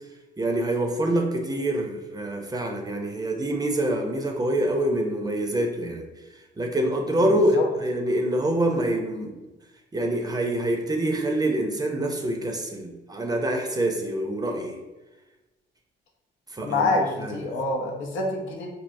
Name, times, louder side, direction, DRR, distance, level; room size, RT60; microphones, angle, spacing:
voice 1, 0.4-9.3 9.9-14.8 16.5-17.4, right 1 dB, 20° right, 2 dB, 0.5 m, -26 dB
voice 2, 7.2-7.7 16.6-18.7, left 3 dB, 80° left, 0 dB, 0.7 m, -27 dB
3.2 x 2.7 x 2.6 m, 1.1 s
cardioid pair, 90°, 20 cm